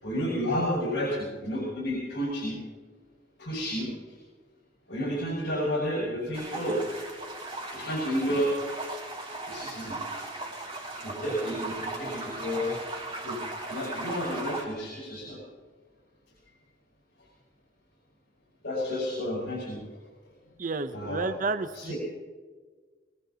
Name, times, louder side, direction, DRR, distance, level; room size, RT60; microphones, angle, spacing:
voice 1, 0.0-2.6 3.4-4.2 4.9-6.8 7.7-8.5 9.5-10.0 11.0-12.8 13.2-13.4 13.7-15.4 18.6-19.8 20.9-21.3 21.8-22.0, equal, 90° left, -5 dB, 5.6 m, -31 dB
sound 1, 6.3-14.6, right 2 dB, 30° right, 3.4 m, -37 dB
voice 2, 20.6-21.9, right 3 dB, 45° right, 11 dB, 0.7 m, -31 dB
23.0 x 19.0 x 2.8 m, 1.4 s
head